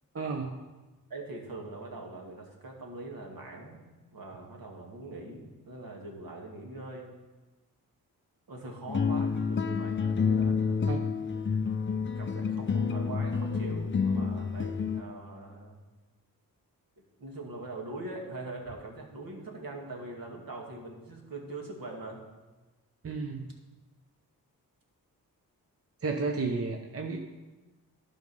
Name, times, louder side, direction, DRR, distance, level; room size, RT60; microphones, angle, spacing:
voice 1, 0.1-0.6 10.9-11.0 23.0-23.4 26.0-27.2, right 4 dB, 40° right, 3 dB, 0.9 m, -32 dB
voice 2, 1.1-3.8 4.1-7.1 8.5-10.9 11.3-11.6 11.9-15.8 17.2-22.2, right 2 dB, 65° right, 0 dB, 2.0 m, -42 dB
sound 1, 8.9-15.0, left 5 dB, 30° left, 0.5 m, -29 dB
11.5 x 5.3 x 5.5 m, 1.2 s
cardioid pair, 75°, 37 cm